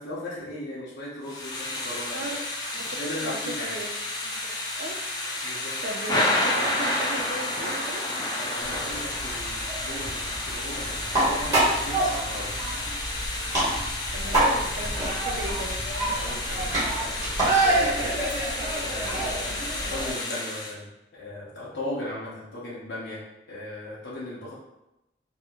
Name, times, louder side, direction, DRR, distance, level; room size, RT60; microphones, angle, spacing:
voice 1, 0.0-2.2 2.9-3.8 5.4-5.7 8.4-12.7 16.0-18.0 18.8-23.2 23.5-24.5, left 1 dB, 90° left, -7 dB, 0.6 m, -37 dB
Thunder / Rain, 1.2-20.7, left 1 dB, 25° left, 0.3 m, -31 dB
voice 2, 2.7-3.9 4.2-5.0 5.3-5.5 5.8-8.0 14.1-15.8, right 1 dB, 80° right, 2 dB, 0.5 m, -36 dB
sound 1, 8.6-20.1, right 1 dB, 20° right, 1.0 m, -27 dB
2.7 x 2.7 x 2.4 m, 0.92 s
head